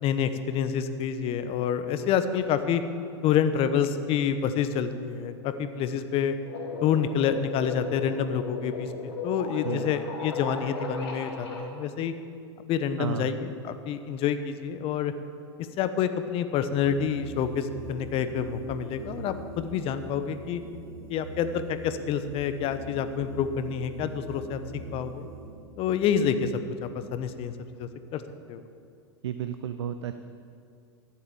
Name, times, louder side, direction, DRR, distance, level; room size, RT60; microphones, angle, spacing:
voice 1, 0.0-2.8 3.2-6.3 6.8-12.1 12.7-15.1 15.8-20.6 21.1-24.6 24.9-25.3 25.8-26.5 27.1-28.2 28.5-28.6, left 8 dB, 40° left, 10 dB, 1.0 m, -28 dB
sound 1, 6.4-11.6, left 3 dB, 70° left, 2.7 m, -36 dB
voice 2, 13.0-13.4 29.2-30.2, right 9 dB, 75° right, 10 dB, 0.6 m, -32 dB
sound 2, 16.6-27.9, right 3 dB, 60° right, 1.8 m, -43 dB
13.5 x 8.0 x 7.1 m, 2.4 s
hypercardioid pair, 100°, 14 cm